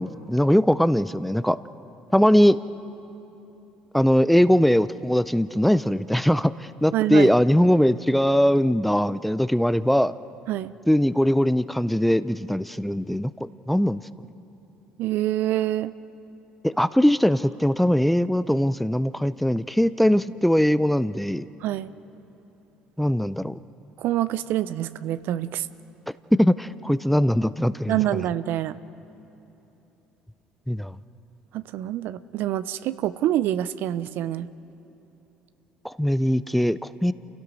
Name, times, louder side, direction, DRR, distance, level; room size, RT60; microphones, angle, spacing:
voice 1, 0.0-1.6 2.1-2.6 3.9-6.5 6.8-10.1 10.9-14.0 16.6-21.4 23.0-23.6 26.4-28.0 30.7-30.9 35.8-37.1, equal, 5° left, 16 dB, 0.5 m, -21 dB
voice 2, 6.9-7.3 10.5-10.7 15.0-15.9 21.6-21.9 24.0-25.7 27.9-28.8 31.5-34.5, right 13 dB, 65° right, 15 dB, 0.5 m, -26 dB
28.5 x 16.5 x 6.3 m, 3.0 s
supercardioid pair, 70°, 4 cm